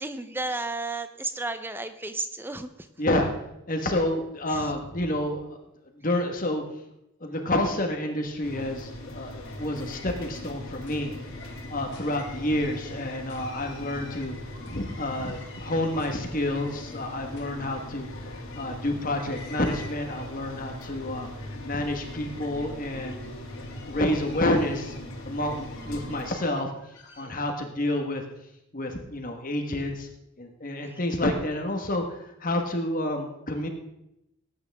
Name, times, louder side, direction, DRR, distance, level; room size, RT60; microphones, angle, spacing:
voice 1, 0.0-2.7 4.5-4.6, right 2 dB, 10° right, 10 dB, 0.6 m, -32 dB
voice 2, 3.0-3.3 3.7-5.6 5.9-6.6 7.2-11.1 11.4-14.3 14.7-23.3 23.9-24.9 25.2-26.7 27.2-28.2 28.7-30.1 30.4-33.7, left 1 dB, 40° left, 4 dB, 1.3 m, -29 dB
sound 1, 8.4-26.3, left 1 dB, 80° left, 2.3 m, -40 dB
sound 2, 9.4-27.2, left 3 dB, 55° left, 2.1 m, -49 dB
18.5 x 8.9 x 3.5 m, 0.84 s
head